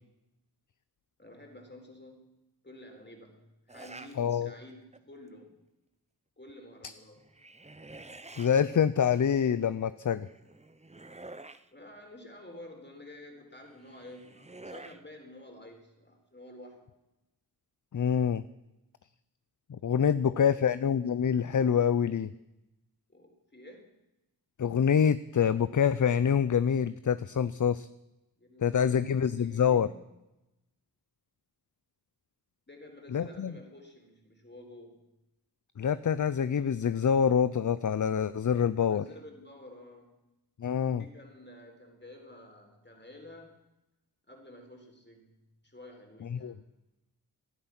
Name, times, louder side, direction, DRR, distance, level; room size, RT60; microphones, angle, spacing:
voice 1, 1.2-2.4 2.6-5.6 6.4-7.2 11.7-16.9 19.9-20.7 23.1-23.9 28.4-30.0 32.7-35.0 38.8-40.1 41.0-43.6 44.3-45.4 45.6-46.6, left 1 dB, 25° left, 2 dB, 4.0 m, -50 dB
sound 1, 3.7-4.2 4.7-5.1 7.2-8.5 10.2-11.7 13.7-15.0, right 2 dB, 15° right, 0.8 m, -48 dB
voice 2, 4.2-4.5 8.4-10.3 17.9-18.4 19.8-22.3 24.6-27.9 28.6-29.9 33.1-33.5 35.8-39.0 40.6-41.0 46.3-46.5, left 7 dB, 50° left, 15 dB, 0.5 m, -26 dB
18.5 x 12.0 x 6.0 m, 0.94 s
wide cardioid pair, 65°, 39 cm